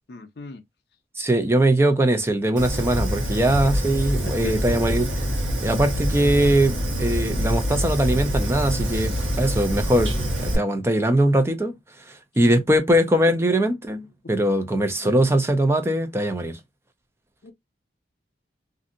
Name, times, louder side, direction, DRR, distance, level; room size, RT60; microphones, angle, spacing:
voice 1, 0.1-0.6 4.4-4.5 15.0-15.2 17.4-17.5, left 3 dB, 60° left, 0.5 m, -37 dB
voice 2, 1.2-5.0 5.6-11.8 12.1-16.6, right 1 dB, 15° right, 0.4 m, -21 dB
Fire, 2.6-10.6, equal, 80° right, 1.1 m, -25 dB
2.6 x 2.5 x 2.5 m
head